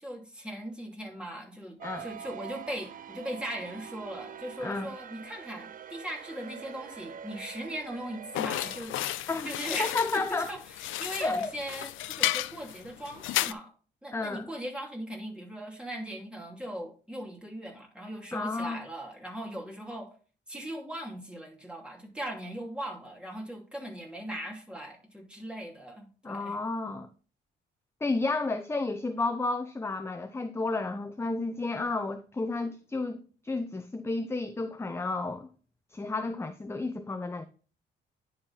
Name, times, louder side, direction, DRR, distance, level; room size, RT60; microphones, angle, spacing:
voice 1, 0.0-9.9 10.5-13.7 14.0-20.1 20.5-26.6, right 1 dB, 5° right, 2.7 m, -39 dB
sound 1, 1.8-8.8, right 9 dB, 45° right, 0.5 m, -45 dB
sound 2, 8.3-13.5, left 15 dB, 80° left, 0.4 m, -33 dB
voice 2, 9.8-10.5 11.2-11.5 14.1-14.5 18.3-18.8 26.2-27.1 28.0-35.5 35.9-37.4, left 3 dB, 15° left, 0.6 m, -32 dB
10.5 x 3.9 x 4.1 m
cardioid pair, 90°, 20 cm